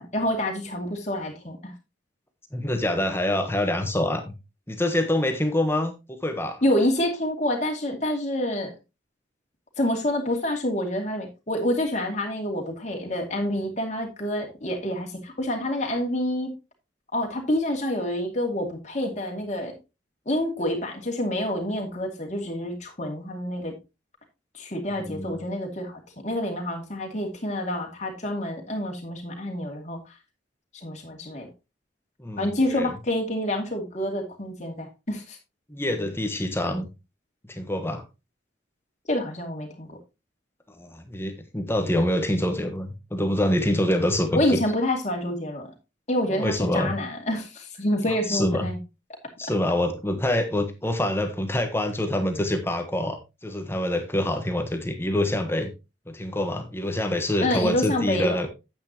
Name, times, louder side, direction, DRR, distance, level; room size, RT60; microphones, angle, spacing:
voice 1, 0.0-1.7 6.6-8.7 9.8-16.5 17.1-19.7 20.3-23.7 24.5-30.0 30.8-31.5 32.4-35.4 39.1-40.0 44.3-45.7 46.1-48.8 57.4-58.4, left 1 dB, 40° left, 2 dB, 2.4 m, -27 dB
voice 2, 2.5-4.3 4.7-6.6 25.0-25.4 32.2-32.9 35.7-36.9 37.5-38.0 40.8-44.6 46.3-46.9 48.1-48.7 49.4-55.7 56.1-58.5, left 1 dB, 15° left, 6 dB, 1.1 m, -26 dB
9.6 x 8.5 x 2.9 m, 0.26 s
head